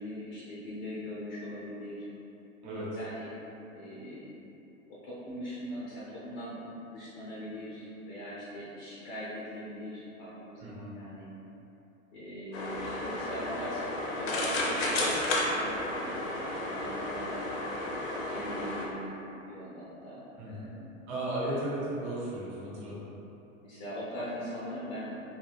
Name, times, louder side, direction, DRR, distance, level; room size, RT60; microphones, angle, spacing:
voice 1, 0.0-2.0 3.0-3.3 3.7-4.3 4.9-6.6 6.9-11.3 12.1-13.9 14.2-17.4 18.3-19.1 19.3-20.2 20.5-21.1 21.4-21.7 23.6-25.1, equal, 25° left, -8 dB, 0.5 m, -41 dB
voice 2, 10.6-10.9 20.4-20.7 21.1-23.0, right 1 dB, 55° right, -8 dB, 1.1 m, -35 dB
sound 1, 12.5-18.9, left 1 dB, 65° left, 0.7 m, -32 dB
2.3 x 2.2 x 3.3 m, 2.9 s
figure-of-eight pair, 95°, 41 cm